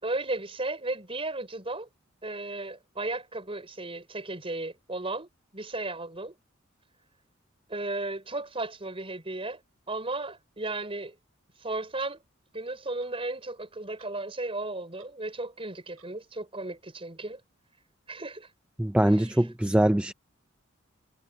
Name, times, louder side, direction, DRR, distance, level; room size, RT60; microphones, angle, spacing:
voice 1, 0.0-1.9 2.2-6.4 7.7-9.6 9.9-11.2 11.6-12.2 12.5-17.4 18.1-18.5 19.0-19.4, right 2 dB, 25° right, 5.1 m, -35 dB
Clock, 12.0-12.2 13.0-13.1 14.0-14.2 14.5-14.6 14.9-15.1 16.0-16.1, right 9 dB, 75° right, 7.2 m, -59 dB
voice 2, 18.8-20.1, right 1 dB, 5° right, 0.3 m, -23 dB
head